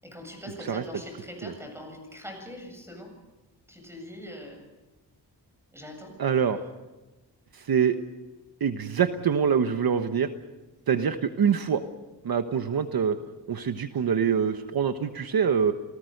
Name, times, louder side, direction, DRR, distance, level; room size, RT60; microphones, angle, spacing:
voice 1, 0.0-3.2 3.7-4.7 5.7-6.2 6.5-6.6, left 1 dB, 5° right, 4 dB, 7.7 m, -42 dB
voice 2, 6.2-6.6 7.5-8.0 8.6-10.3 10.9-11.8 12.2-13.2 13.5-15.7, right 7 dB, 60° right, 8 dB, 1.2 m, -25 dB
28.0 x 18.5 x 6.6 m, 1.1 s
wide cardioid pair, 110°, 41 cm